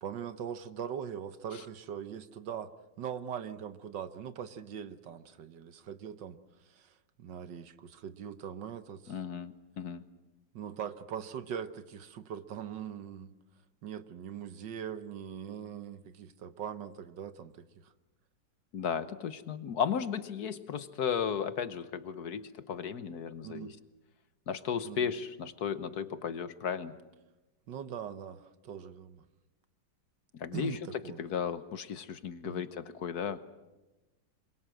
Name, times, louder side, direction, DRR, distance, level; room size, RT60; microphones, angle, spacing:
voice 1, 0.0-2.7 3.0-9.2 10.5-13.3 13.8-17.9 23.4-23.7 24.8-25.1 27.7-29.3 30.5-31.2 32.4-32.6, right 8 dB, 65° right, 12 dB, 1.7 m, -41 dB
voice 2, 9.1-10.0 18.7-23.8 24.5-27.0 30.3-30.8 31.2-33.4, left 7 dB, 60° left, 13 dB, 1.5 m, -35 dB
26.5 x 23.0 x 7.8 m, 1.1 s
omnidirectional pair, 2.1 m